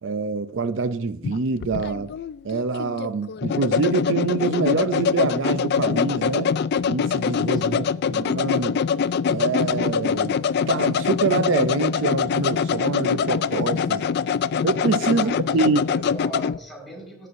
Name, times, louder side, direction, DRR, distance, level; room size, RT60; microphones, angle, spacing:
voice 1, 0.0-2.1 2.4-6.5 6.9-8.8 9.3-14.1 14.6-15.8, right 4 dB, 70° right, 0.5 m, -25 dB
sound 1, 1.2-16.6, left 6 dB, 55° left, 0.3 m, -24 dB
voice 2, 7.5-8.2 15.1-17.3, equal, ahead, 4.7 m, -39 dB
17.5 x 7.6 x 2.6 m
head